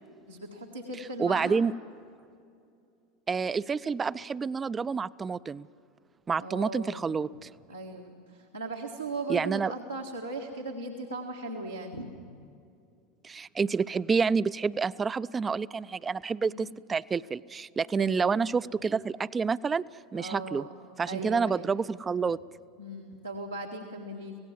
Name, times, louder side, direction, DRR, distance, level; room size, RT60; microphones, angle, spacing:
voice 1, 0.3-1.6 6.4-7.1 7.7-12.1 16.5-16.7 18.0-18.3 20.1-20.7 21.1-21.7 22.8-24.4, right 2 dB, 90° right, -2 dB, 1.7 m, -38 dB
voice 2, 1.2-1.7 3.3-5.7 6.3-7.5 9.3-9.7 13.2-19.8 20.1-20.7 21.0-22.4, right 5 dB, 20° right, 17 dB, 0.4 m, -28 dB
26.0 x 17.5 x 7.4 m, 2.5 s
figure-of-eight pair, 80°, 0 cm